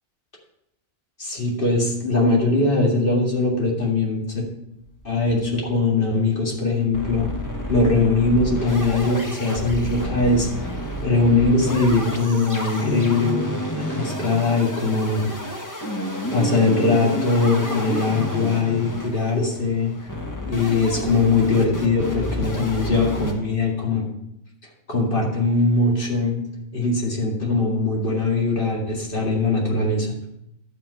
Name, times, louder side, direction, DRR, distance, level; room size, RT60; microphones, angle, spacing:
voice 1, 1.2-4.5 5.0-7.3 7.7-10.7 11.0-13.4 13.7-15.3 16.3-19.9 20.5-24.1 24.9-26.4 26.7-30.2, left 3 dB, 45° left, -2 dB, 2.4 m, -21 dB
sound 1, 4.9-5.8 6.1-6.2 6.4-6.5 6.9-23.3, equal, 15° left, 1.2 m, -30 dB
11.5 x 7.4 x 4.8 m, 0.81 s
omnidirectional pair, 1.2 m